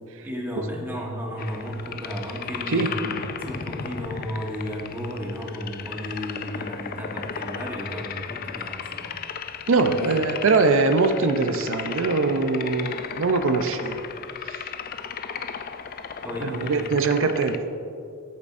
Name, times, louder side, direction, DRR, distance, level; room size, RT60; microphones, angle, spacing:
voice 1, 0.2-9.7 10.0-10.2 15.9-16.9, equal, 10° right, -2 dB, 1.2 m, -34 dB
sound 1, 1.4-17.6, left 7 dB, 40° left, 0.3 m, -35 dB
voice 2, 9.7-14.0 14.4-14.7 16.4-17.6, right 3 dB, 60° right, 8 dB, 0.5 m, -22 dB
11.0 x 8.4 x 2.5 m, 2.5 s
head